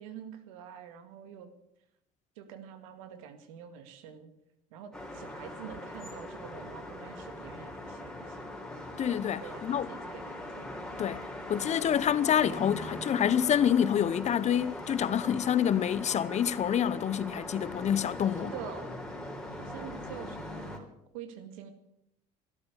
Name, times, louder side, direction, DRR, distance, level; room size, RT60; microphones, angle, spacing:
voice 1, 0.0-1.5 2.4-4.3 4.7-8.5 9.4-10.8 18.4-18.9 19.5-21.7, right 8 dB, 85° right, 2.1 m, -46 dB
sound 1, 4.9-20.8, left 1 dB, 5° left, 3.7 m, -41 dB
voice 2, 9.0-9.9 11.0-11.2 11.5-18.5, left 9 dB, 40° left, 0.9 m, -27 dB
13.5 x 12.0 x 8.1 m
supercardioid pair, 85°, 17 cm